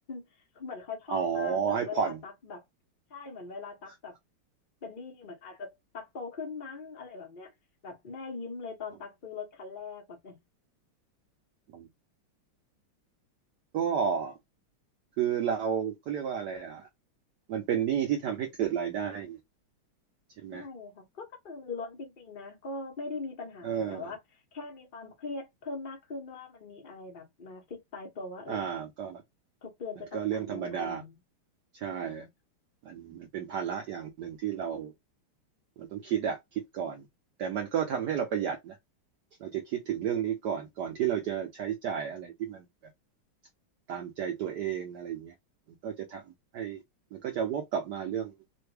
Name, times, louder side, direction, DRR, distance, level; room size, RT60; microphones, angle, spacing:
voice 1, 0.1-2.6 3.1-4.2 4.8-7.5 7.8-10.4 20.5-24.2 24.5-28.7 29.6-31.1 31.9-32.3, left 4 dB, 60° left, 0.5 m, -41 dB
voice 2, 1.1-2.2 11.7-11.9 13.7-14.4 15.2-16.9 17.5-19.4 20.4-20.7 23.6-24.1 28.5-29.2 30.1-31.0 31.7-32.3 32.8-34.9 35.8-37.1 37.4-38.8 39.4-42.6 43.9-45.3 45.8-46.2 46.5-46.8 47.1-48.3, right 8 dB, 70° right, 1.0 m, -32 dB
3.4 x 2.2 x 3.2 m
omnidirectional pair, 2.3 m